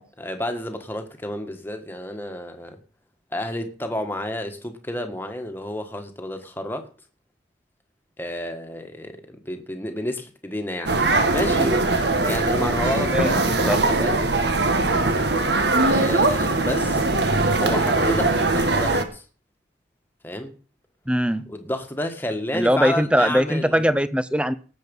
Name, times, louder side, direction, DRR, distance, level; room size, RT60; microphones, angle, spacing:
voice 1, 0.2-2.8 3.3-6.9 8.2-10.9 11.3-14.2 15.8-17.1 17.6-19.2 20.2-20.5 21.5-23.9, left 1 dB, 10° left, 1.6 m, -30 dB
sound 1, 10.9-19.0, right 2 dB, 60° right, 1.6 m, -21 dB
voice 2, 13.1-13.8 21.1-21.5 22.5-24.5, equal, 5° right, 0.7 m, -21 dB
18.0 x 7.7 x 5.5 m
head